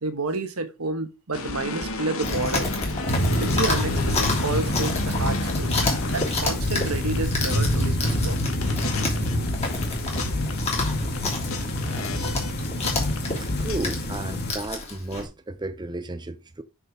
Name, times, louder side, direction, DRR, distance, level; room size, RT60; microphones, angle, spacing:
voice 1, 0.0-2.7 3.4-5.7 6.1-8.4, right 3 dB, 80° right, 1.5 m, -30 dB
sound 1, 1.3-7.9 8.1-13.8, left 2 dB, 70° left, 1.6 m, -32 dB
Chewing mastication, 2.2-15.3, left 2 dB, 30° left, 3.1 m, -30 dB
sound 2, 3.1-14.5, equal, 45° left, 2.1 m, -27 dB
voice 2, 13.4-16.6, right 2 dB, 20° right, 0.6 m, -33 dB
6.6 x 6.3 x 5.0 m
head